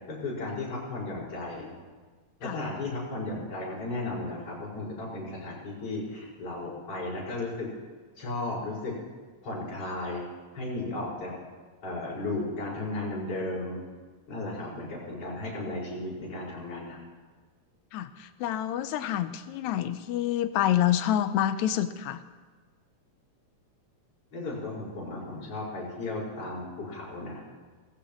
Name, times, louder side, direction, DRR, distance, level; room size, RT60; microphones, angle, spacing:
voice 1, 0.1-1.7 2.4-7.7 8.2-8.9 9.4-10.3 10.5-11.3 11.8-13.8 14.3-17.0 24.3-27.4, left 2 dB, 50° left, -7 dB, 6.3 m, -35 dB
voice 2, 17.9-22.2, left 11 dB, 80° left, 11 dB, 1.9 m, -27 dB
19.0 x 15.0 x 3.1 m, 1.4 s
omnidirectional pair, 3.5 m